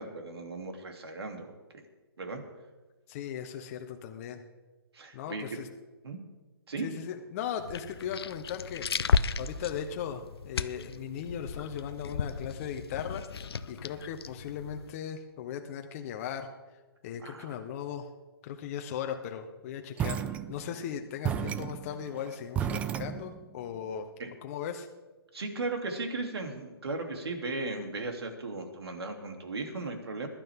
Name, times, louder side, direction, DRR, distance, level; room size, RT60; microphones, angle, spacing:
voice 1, 0.0-1.5 2.2-2.4 4.9-5.4 6.0-6.2 6.7-6.9 17.2-17.6 24.2-24.3 25.3-30.3, right 3 dB, 80° right, 3 dB, 3.1 m, -36 dB
voice 2, 3.1-4.4 5.1-5.7 6.8-16.5 17.0-18.1 18.4-24.1 24.4-24.9, left 8 dB, 35° left, 5 dB, 1.1 m, -38 dB
sound 1, 7.6-14.9, left 5 dB, 75° left, 0.7 m, -34 dB
sound 2, 20.0-20.9 21.2-23.6, right 9 dB, 10° right, 0.4 m, -33 dB
21.5 x 12.0 x 3.7 m, 1.2 s
hypercardioid pair, 150°, 13 cm